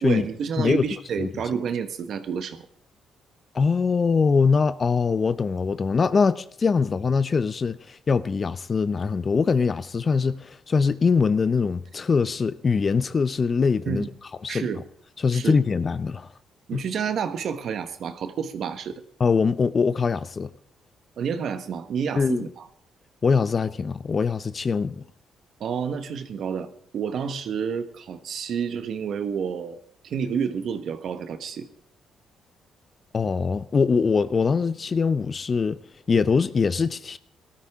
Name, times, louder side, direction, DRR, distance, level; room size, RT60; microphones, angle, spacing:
voice 1, 0.0-2.6 13.9-14.1 14.5-14.8 15.3-15.6 16.7-18.9 21.2-22.7 25.6-31.7, right 7 dB, 65° right, 1.3 m, -29 dB
voice 2, 0.6-0.9 1.2-1.3 3.5-14.0 14.4-14.7 15.2-16.3 16.7-16.8 19.2-20.5 22.2-22.4 23.2-25.0 33.1-35.8 36.1-37.2, left 5 dB, 40° left, 0.6 m, -23 dB
19.0 x 13.0 x 3.6 m
cardioid pair, 90°, 0 cm